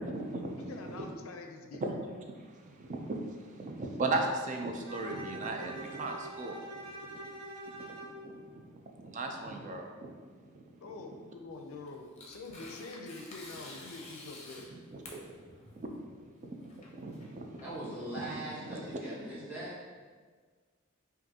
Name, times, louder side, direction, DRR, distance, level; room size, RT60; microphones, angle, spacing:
voice 1, 0.0-1.0 1.8-2.0 2.3-6.6 7.1-7.2 7.7-8.0 8.2-10.1 10.4-10.6 14.9-15.4 15.8-17.6 18.2-18.3 18.6-18.8, right 2 dB, 35° right, 3 dB, 0.4 m, -38 dB
voice 2, 0.6-1.8 10.8-14.7, left 3 dB, 75° left, 4 dB, 0.4 m, -45 dB
Bowed string instrument, 4.8-8.2, right 1 dB, 85° right, 1.0 m, -44 dB
Tearing, 11.5-18.3, left 1 dB, 30° left, 0.6 m, -50 dB
voice 3, 17.6-19.9, right 1 dB, 10° right, -10 dB, 1.4 m, -40 dB
5.2 x 2.5 x 2.7 m, 1.5 s
head